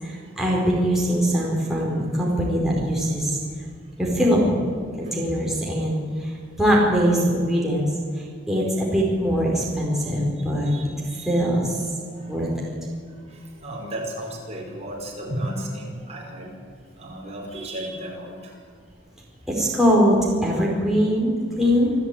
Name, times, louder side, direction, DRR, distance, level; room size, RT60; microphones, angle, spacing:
voice 1, 0.0-3.4 4.0-4.6 5.0-7.9 8.2-10.7 11.3-11.8 12.3-12.5 19.5-21.9, equal, ahead, -4 dB, 4.5 m, -22 dB
voice 2, 10.6-11.3 12.1-12.4 13.1-16.6 17.0-18.6, right 1 dB, 35° right, -1 dB, 5.5 m, -34 dB
27.0 x 14.0 x 9.1 m, 2.1 s
head